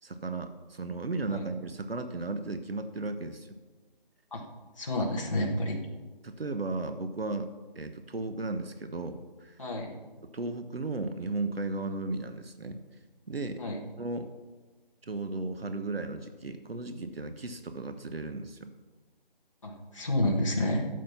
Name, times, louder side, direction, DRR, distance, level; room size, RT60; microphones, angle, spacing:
voice 1, 0.0-3.6 6.2-9.6 10.3-12.8 13.3-13.6 14.0-14.3 15.0-18.7, right 2 dB, 85° right, 9 dB, 1.0 m, -35 dB
voice 2, 4.8-5.8 9.6-9.9 13.6-13.8 19.6-20.9, left 1 dB, 35° left, -3 dB, 1.5 m, -29 dB
12.0 x 7.6 x 5.8 m, 1.3 s
figure-of-eight pair, 170°, 29 cm